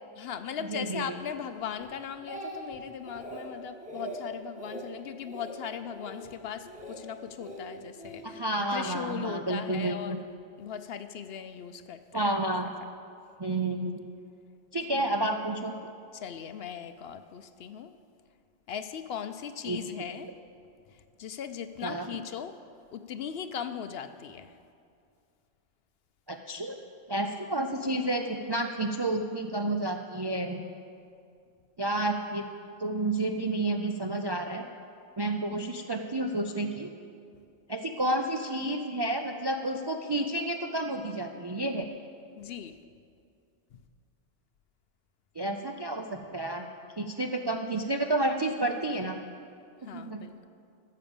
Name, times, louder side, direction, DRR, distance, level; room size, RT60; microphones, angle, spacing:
voice 1, 0.2-8.4 8.7-10.3 10.6-12.3 14.9-15.1 16.1-18.0 18.7-20.3 21.2-22.5 22.9-24.5 42.4-42.8 49.8-50.5, left 8 dB, 65° left, 10 dB, 0.7 m, -38 dB
voice 2, 0.7-1.2 8.2-10.2 12.1-12.7 13.4-14.0 14.7-15.7 19.7-19.9 21.8-22.1 26.3-26.7 27.1-30.6 31.8-32.5 32.8-34.6 35.2-36.9 37.7-41.8 45.4-46.7 47.0-49.2 49.9-50.2, right 2 dB, 40° right, 4 dB, 0.3 m, -30 dB
Speech, 1.8-2.8 3.1-3.5 3.8-4.2 4.6-4.9 5.2-5.6 5.9-6.2 6.7-7.0 7.4-8.2 9.0-9.2, right 1 dB, 5° right, 2.0 m, -42 dB
15.0 x 6.7 x 7.1 m, 2.4 s
omnidirectional pair, 1.2 m